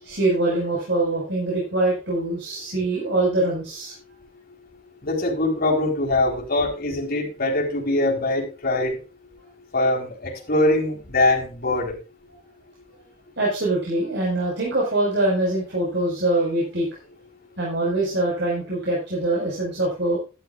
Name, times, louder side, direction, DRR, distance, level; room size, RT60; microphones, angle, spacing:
voice 1, 0.0-3.9 13.4-16.9 17.6-20.2, right 2 dB, 55° right, -3 dB, 5.0 m, -23 dB
voice 2, 5.0-9.0 9.7-11.9, left 2 dB, 45° left, 0 dB, 4.1 m, -22 dB
13.5 x 11.5 x 2.4 m, 0.32 s
head